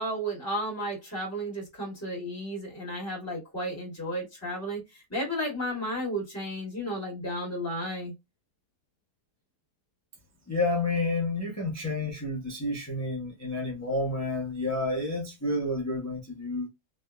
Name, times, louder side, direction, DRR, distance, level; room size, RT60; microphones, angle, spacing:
voice 1, 0.0-8.1, equal, 10° left, 1.6 m, -33 dB
voice 2, 10.5-16.7, left 2 dB, 25° left, 0.3 m, -30 dB
3.3 x 2.7 x 2.2 m
omnidirectional pair, 1.7 m